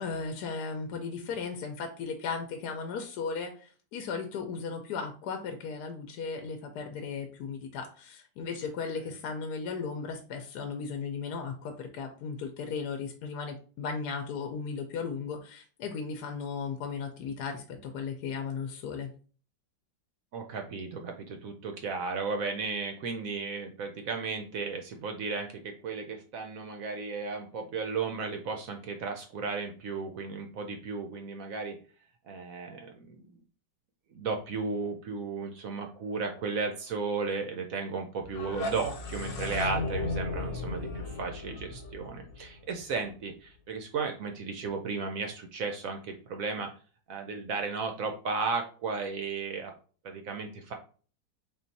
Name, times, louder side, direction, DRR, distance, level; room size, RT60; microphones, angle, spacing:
voice 1, 0.0-19.1, left 5 dB, 70° left, 5 dB, 1.1 m, -36 dB
voice 2, 20.3-31.8 32.2-33.3 34.1-46.7 47.1-49.7 50.0-50.7, right 4 dB, 70° right, 4 dB, 0.8 m, -34 dB
sound 1, 38.2-43.1, left 3 dB, 90° left, 1.4 m, -35 dB
3.7 x 2.4 x 4.0 m, 0.39 s
omnidirectional pair, 2.0 m